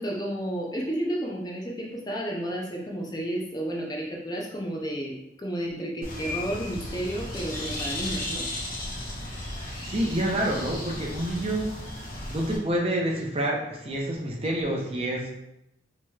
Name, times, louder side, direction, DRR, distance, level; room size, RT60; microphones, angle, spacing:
voice 1, 0.0-8.5, right 1 dB, 20° left, -2 dB, 0.5 m, -32 dB
Bird, 6.0-12.6, left 1 dB, 50° left, 1.0 m, -35 dB
voice 2, 9.6-11.7 12.3-15.3, right 1 dB, 30° right, -1 dB, 0.6 m, -28 dB
4.6 x 2.9 x 2.3 m, 0.86 s
head